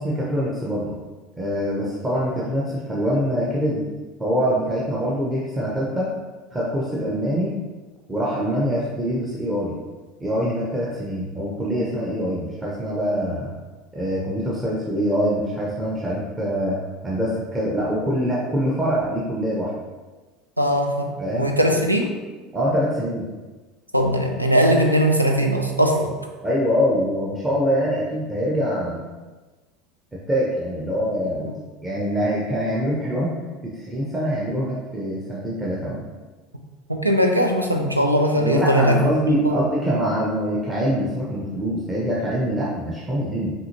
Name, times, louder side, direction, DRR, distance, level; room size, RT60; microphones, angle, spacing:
voice 1, 0.0-0.9 1.4-3.8 4.2-6.1 6.5-7.5 8.1-9.8 10.2-13.5 13.9-16.8 17.0-19.7 21.2-21.5 22.5-23.3 26.4-29.1 30.3-31.5 31.8-33.3 33.6-36.0 38.4-43.5, equal, 15° right, -6 dB, 0.8 m, -24 dB
voice 2, 20.6-22.2 23.9-26.1 36.9-39.1 39.4-39.6, equal, 90° right, 3 dB, 0.4 m, -20 dB
5.4 x 2.8 x 2.9 m, 1.3 s
figure-of-eight pair, 70°, 0 cm